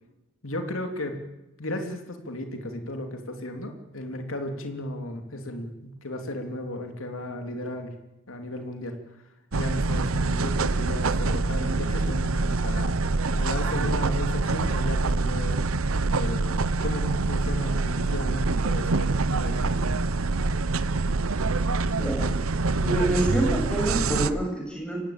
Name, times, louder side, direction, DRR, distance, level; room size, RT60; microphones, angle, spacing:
voice 1, 0.4-1.2 1.6-7.9 8.3-9.0 9.5-12.9 13.4-15.6 16.1-19.8, left 1 dB, 75° left, 5 dB, 3.0 m, -34 dB
sound 1, 9.5-24.3, right 3 dB, 85° right, 0.9 m, -25 dB
voice 2, 22.0-22.4 22.8-25.0, right 1 dB, 5° left, 0 dB, 7.8 m, -27 dB
24.0 x 17.5 x 8.9 m, 0.99 s
head